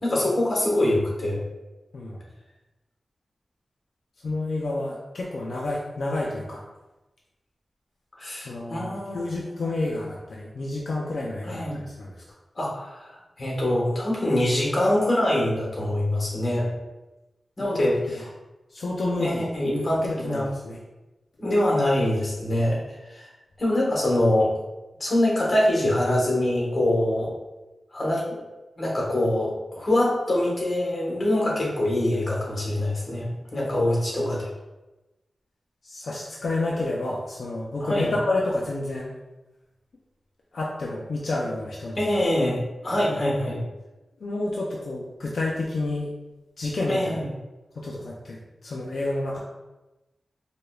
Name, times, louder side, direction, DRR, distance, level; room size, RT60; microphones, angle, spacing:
voice 1, 0.0-1.4 8.2-9.3 9.6-9.7 11.4-11.8 12.5-16.7 17.6-18.3 19.2-20.5 21.4-23.3 23.6-24.5 25.0-27.3 27.9-28.4 28.8-34.5 37.8-38.1 42.0-43.6 46.9-47.2, left 1 dB, 40° left, -3 dB, 1.1 m, -24 dB
voice 2, 4.2-6.6 8.4-12.1 16.3-16.7 17.6-18.2 18.7-20.8 35.8-39.1 40.5-42.2 44.2-46.1 46.6-47.2 47.8-49.4, left 2 dB, 75° left, -3 dB, 0.4 m, -30 dB
4.9 x 2.2 x 2.2 m, 1.1 s
wide cardioid pair, 105°, 0 cm